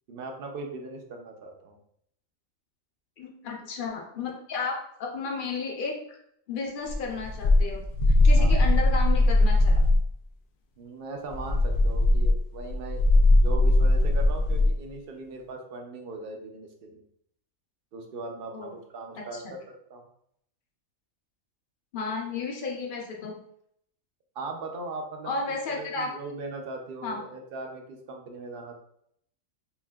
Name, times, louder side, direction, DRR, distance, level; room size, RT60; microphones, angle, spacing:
voice 1, 0.1-1.8 8.4-8.6 10.8-17.0 17.9-20.1 24.3-28.7, right 2 dB, 55° right, 2 dB, 0.7 m, -39 dB
voice 2, 3.2-6.0 6.5-7.9 8.2-9.7 18.5-18.7 19.1-19.5 21.9-23.3 25.2-26.1 27.0-27.2, left 4 dB, 50° left, 0 dB, 0.7 m, -33 dB
sound 1, 6.9-10.1 11.3-14.8, left 2 dB, 75° left, 0.4 m, -20 dB
5.5 x 2.5 x 2.3 m, 0.70 s
omnidirectional pair, 1.4 m